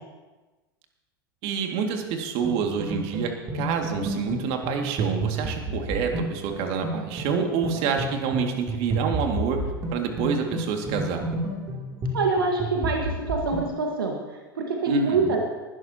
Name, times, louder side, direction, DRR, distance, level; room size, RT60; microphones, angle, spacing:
voice 1, 1.4-9.6 9.9-11.2 14.9-15.3, right 6 dB, 55° right, 3 dB, 2.1 m, -27 dB
sound 1, 2.4-13.7, right 1 dB, 35° right, 3.0 m, -31 dB
voice 2, 12.1-14.2 14.5-15.4, right 3 dB, 80° right, 2 dB, 1.6 m, -25 dB
19.5 x 12.0 x 2.9 m, 1.2 s
hypercardioid pair, 85°, 12 cm